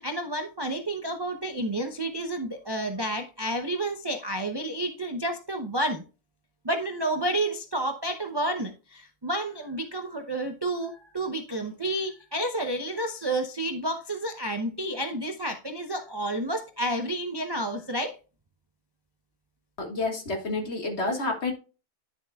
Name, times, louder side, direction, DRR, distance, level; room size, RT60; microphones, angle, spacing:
voice 1, 0.0-6.0 6.6-18.2, right 1 dB, 25° right, 0.5 m, -30 dB
voice 2, 19.8-21.5, left 2 dB, 50° left, 2.0 m, -29 dB
10.5 x 6.8 x 2.3 m
omnidirectional pair, 1.5 m